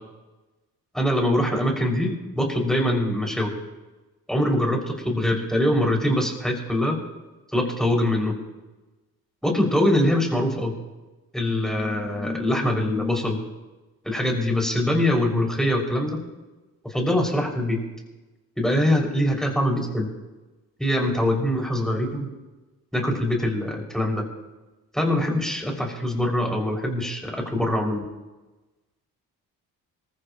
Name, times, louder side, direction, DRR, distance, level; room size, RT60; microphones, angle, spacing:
voice 1, 0.9-3.5 4.3-7.0 7.5-8.4 9.4-10.7 11.3-13.4 14.0-16.2 16.8-17.8 18.6-20.1 20.8-22.3 22.9-24.2 24.9-28.0, left 1 dB, ahead, 0 dB, 6.2 m, -23 dB
26.5 x 15.0 x 3.1 m, 1.2 s
hypercardioid pair, 45°, 45 cm